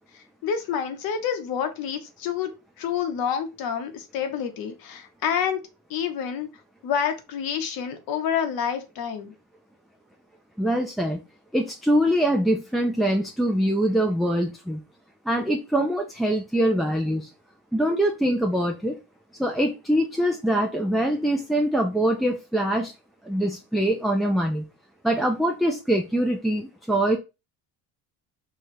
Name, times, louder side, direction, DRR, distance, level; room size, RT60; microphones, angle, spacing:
voice 1, 0.1-2.5 2.8-5.6 5.9-6.5 6.8-9.3, left 8 dB, 65° left, 1.1 m, -28 dB
voice 2, 10.6-11.2 11.5-14.8 15.3-17.3 17.7-19.0 19.4-22.9 23.2-24.6 25.0-27.2, right 1 dB, ahead, 0.3 m, -23 dB
4.9 x 2.4 x 4.3 m
cardioid pair, 135°, 39 cm